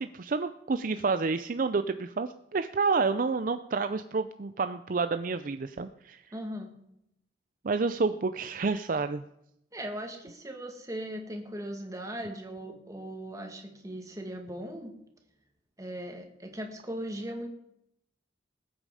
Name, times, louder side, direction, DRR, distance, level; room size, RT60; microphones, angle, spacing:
voice 1, 0.0-6.2 7.6-9.2, right 4 dB, 45° right, 11 dB, 0.5 m, -29 dB
voice 2, 6.3-6.7 9.7-14.9 15.8-17.5, right 1 dB, 20° right, 3 dB, 2.1 m, -38 dB
20.0 x 8.7 x 5.0 m, 0.80 s
head